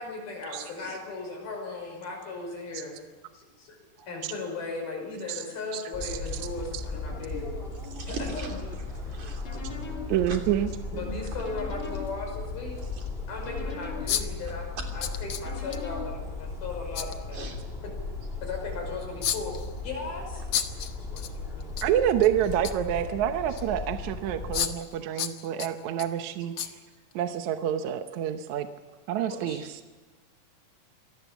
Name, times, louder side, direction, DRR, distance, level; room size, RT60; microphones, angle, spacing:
voice 1, 0.0-3.0 3.3-3.8 4.1-7.5 8.1-8.6 9.6-9.7 10.9-12.8 13.3-14.7 14.9-17.6 17.8-17.9 18.4-19.5 19.8-20.4 21.1-21.7 23.5-23.6 25.1-25.2 29.2-29.6, left 3 dB, 85° left, 1 dB, 7.6 m, -37 dB
voice 2, 5.7-6.1 6.7-6.8 10.1-10.7 21.8-26.5 27.2-28.7 29.1-29.6, right 10 dB, 70° right, 8 dB, 1.9 m, -27 dB
sound 1, 5.9-24.7, left 3 dB, 15° left, 2.7 m, -37 dB
voice 3, 8.0-8.6 8.9-9.6 10.3-10.4 10.9-11.4 17.3-17.7 24.8-24.9 28.3-28.4, right 4 dB, 55° right, 2 dB, 4.4 m, -41 dB
sound 2, 8.9-16.8, left 6 dB, 35° left, 4.0 m, -44 dB
sound 3, 10.1-10.2 12.1-12.2 12.8-12.9 14.1-14.5 15.0-15.8 16.9-17.2 19.2-19.7 20.5-21.3 21.6-21.9 22.2-22.9 23.6-23.7 24.5-24.9 25.2-26.1 26.6-26.7 27.1-27.2, left 10 dB, 60° left, 1.9 m, -31 dB
25.5 x 18.5 x 7.2 m, 1.3 s
omnidirectional pair, 4.2 m